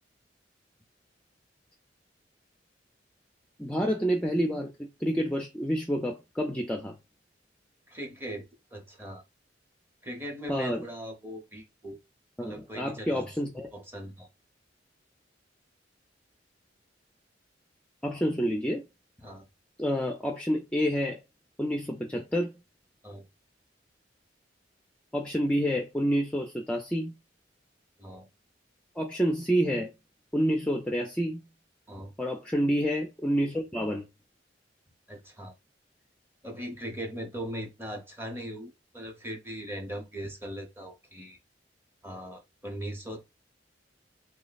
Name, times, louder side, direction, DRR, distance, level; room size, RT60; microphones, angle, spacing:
voice 1, 3.6-7.0 10.5-10.8 12.4-13.7 18.0-18.8 19.8-21.2 21.6-22.5 25.1-27.1 29.0-29.9 30.3-31.4 32.2-34.1, equal, 5° left, 0.4 m, -28 dB
voice 2, 7.9-9.2 10.0-12.0 12.4-13.3 13.7-14.3 19.2-19.5 23.0-23.2 28.0-28.3 31.9-32.1 35.1-35.5 36.4-41.4 42.0-43.3, equal, 15° right, 0.8 m, -39 dB
3.0 x 2.0 x 4.0 m
head